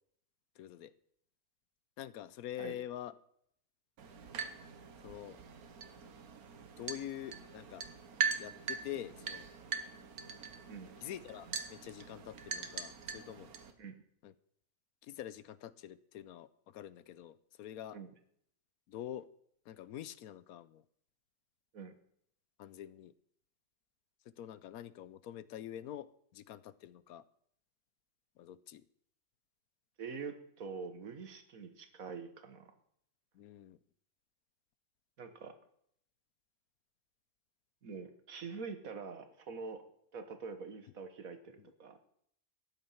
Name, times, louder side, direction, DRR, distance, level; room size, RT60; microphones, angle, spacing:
voice 1, 0.6-0.9 2.0-3.1 5.0-5.4 6.8-7.9 8.4-9.5 11.0-13.5 14.2-14.3 15.0-18.0 18.9-19.3 19.7-20.8 22.6-23.1 24.2-27.2 28.4-28.8 33.3-33.8 41.6-41.7, left 11 dB, 85° left, 16 dB, 1.1 m, -46 dB
sound 1, 4.0-13.7, right 6 dB, 85° right, 1.6 m, -42 dB
voice 2, 30.0-32.7 35.2-35.6 37.8-39.9 40.1-42.0, right 5 dB, 70° right, 8 dB, 1.7 m, -45 dB
13.5 x 9.6 x 5.7 m, 0.68 s
omnidirectional pair, 1.5 m